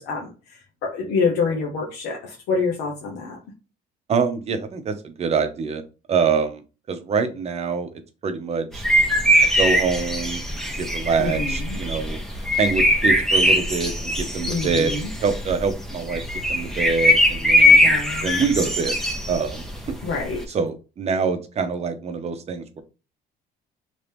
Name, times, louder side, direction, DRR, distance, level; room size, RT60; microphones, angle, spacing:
voice 1, 0.0-3.4 11.2-11.8 14.5-15.1 17.8-18.3 20.0-20.4, left 4 dB, 85° left, -1 dB, 0.9 m, -27 dB
voice 2, 4.1-5.8 6.1-6.6 6.9-7.9 8.2-8.9 9.5-10.4 10.8-12.2 12.6-14.9 15.2-16.2 16.5-17.9 18.2-19.0 19.3-19.6 20.5-22.8, right 5 dB, 40° right, 8 dB, 0.7 m, -25 dB
sound 1, 8.7-20.4, left 1 dB, 5° left, 0.9 m, -21 dB
3.0 x 2.7 x 3.4 m, 0.32 s
cardioid pair, 110°, 17 cm